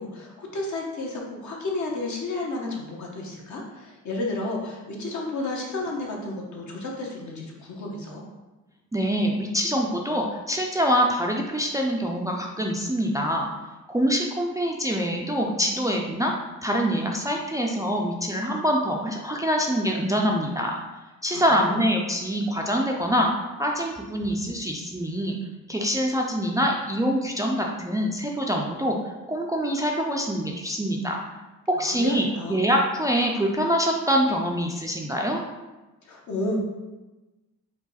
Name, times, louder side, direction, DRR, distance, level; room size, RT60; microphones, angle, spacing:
voice 1, 0.0-8.3 21.3-21.8 32.0-32.6 36.1-36.6, left 2 dB, 60° left, -1 dB, 1.1 m, -32 dB
voice 2, 8.9-13.5 13.9-16.3 16.6-20.7 21.2-23.3 23.6-25.4 25.7-29.0 29.3-31.2 31.7-35.4, equal, 10° right, 0 dB, 0.4 m, -25 dB
4.7 x 2.3 x 4.1 m, 1.1 s
cardioid pair, 95°, 33 cm